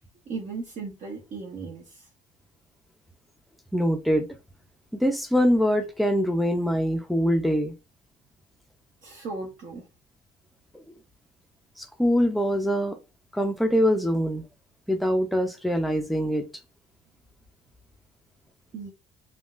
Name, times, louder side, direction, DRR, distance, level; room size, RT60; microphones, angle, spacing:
voice 1, 0.3-2.1 9.0-9.8 18.7-18.9, right 4 dB, 50° right, 0.9 m, -36 dB
voice 2, 3.7-4.3 4.9-7.7 11.8-13.0 13.3-14.5 14.9-16.4, equal, ahead, 0.5 m, -23 dB
3.6 x 2.3 x 2.5 m
cardioid pair, 110°, 17 cm